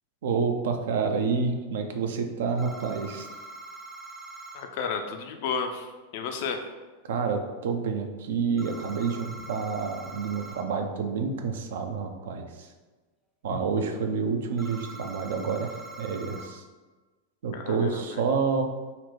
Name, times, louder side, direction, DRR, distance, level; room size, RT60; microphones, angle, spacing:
voice 1, 0.2-3.3 7.0-12.7 13.4-16.6 17.4-18.6, right 5 dB, 60° right, 5 dB, 0.4 m, -28 dB
sound 1, 2.6-4.6 8.6-10.6 14.6-16.5, right 2 dB, 5° right, 0.5 m, -43 dB
voice 2, 4.5-5.9 6.1-6.6 13.5-13.6 17.5-18.2, left 6 dB, 50° left, 5 dB, 0.4 m, -32 dB
4.1 x 2.1 x 4.3 m, 1.2 s
figure-of-eight pair, 90°, 0 cm